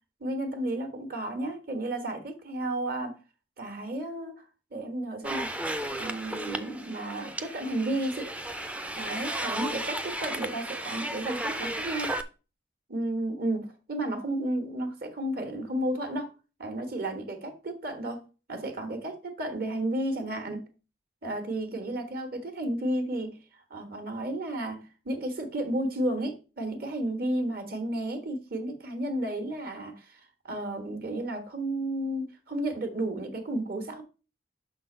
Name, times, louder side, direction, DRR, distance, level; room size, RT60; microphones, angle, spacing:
voice 1, 0.2-3.2 3.6-4.4 4.7-5.5 5.9-8.3 9.0-12.1 12.9-16.3 16.6-18.2 18.5-20.7 21.2-23.4 23.7-34.0, right 1 dB, 55° right, 1.4 m, -32 dB
sound 1, 5.2-12.2, right 1 dB, 10° right, 0.4 m, -34 dB
5.9 x 3.9 x 5.4 m
head